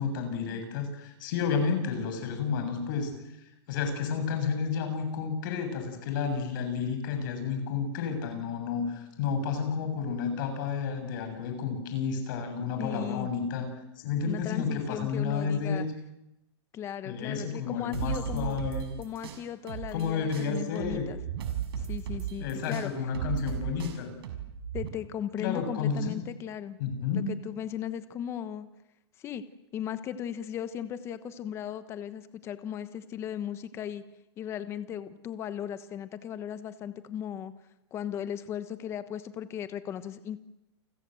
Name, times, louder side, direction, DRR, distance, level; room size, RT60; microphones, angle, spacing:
voice 1, 0.0-3.2 3.7-13.7 14.0-15.9 17.0-18.9 19.9-21.1 22.4-24.1 25.4-26.2 26.8-27.3, left 6 dB, 45° left, 6 dB, 7.4 m, -31 dB
voice 2, 12.8-13.3 14.2-15.9 16.7-18.6 19.0-21.2 21.8-22.9 24.7-26.8 27.1-28.7 29.2-29.4 29.7-34.0 34.4-37.5 37.9-40.4, left 9 dB, 20° left, 12 dB, 1.2 m, -37 dB
sound 1, 17.9-20.1 20.3-24.9, right 9 dB, 60° right, 6.1 m, -35 dB
30.0 x 24.0 x 7.9 m, 0.87 s
supercardioid pair, 170°, 14 cm